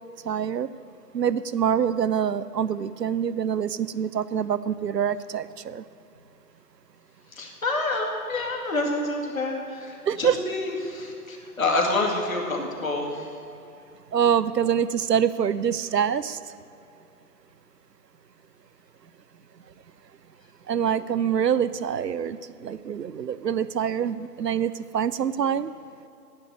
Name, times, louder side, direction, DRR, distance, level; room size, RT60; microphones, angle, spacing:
voice 1, 0.2-0.7 1.1-5.8 10.1-10.4 14.1-16.4 20.7-25.7, right 8 dB, 85° right, 16 dB, 0.6 m, -25 dB
voice 2, 7.3-13.4 23.4-23.5, left 2 dB, 55° left, 0 dB, 2.3 m, -28 dB
9.8 x 8.7 x 8.2 m, 2.7 s
figure-of-eight pair, 145°, 48 cm